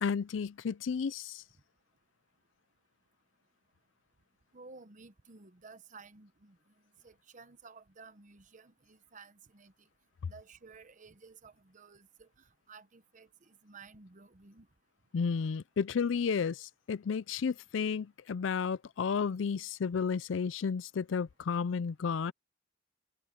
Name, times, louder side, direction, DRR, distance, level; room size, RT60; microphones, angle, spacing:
voice 1, 0.0-1.4 15.1-22.3, left 6 dB, 75° left, 0.4 m, -32 dB
voice 2, 4.5-6.6 7.0-9.9 10.3-14.7, right 4 dB, 40° right, 0.9 m, -54 dB
head